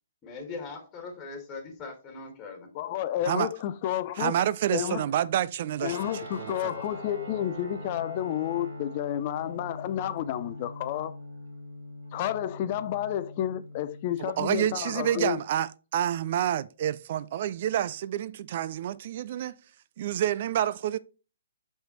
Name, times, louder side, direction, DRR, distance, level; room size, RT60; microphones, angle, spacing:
voice 1, 0.2-2.7, left 4 dB, 20° left, 1.8 m, -40 dB
voice 2, 2.7-4.4 4.7-5.1 5.8-11.1 12.1-15.4, left 12 dB, 40° left, 0.5 m, -31 dB
voice 3, 4.2-6.0 6.4-6.7 14.2-19.6 20.0-21.0, right 11 dB, 45° right, 0.3 m, -28 dB
Guitar, 5.8-14.3, left 1 dB, 85° right, 3.0 m, -42 dB
5.7 x 5.5 x 3.0 m
figure-of-eight pair, 130°, 0 cm